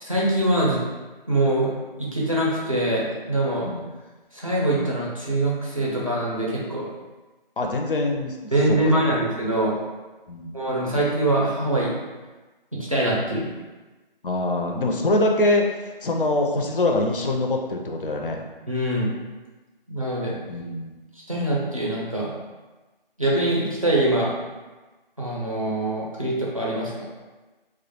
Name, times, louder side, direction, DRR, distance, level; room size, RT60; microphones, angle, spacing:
voice 1, 0.0-0.8 1.3-1.7 2.0-3.7 4.3-6.9 8.5-9.7 10.5-11.9 12.8-13.5 18.7-19.1 19.9-20.4 21.3-22.3 23.2-24.3 25.2-26.9, right 1 dB, 35° right, -5 dB, 0.4 m, -23 dB
voice 2, 7.6-8.4 8.7-9.2 10.3-10.6 14.2-18.4 20.5-21.0, left 2 dB, 65° left, 2 dB, 0.4 m, -24 dB
2.2 x 2.0 x 2.8 m, 1.2 s
figure-of-eight pair, 170°, 29 cm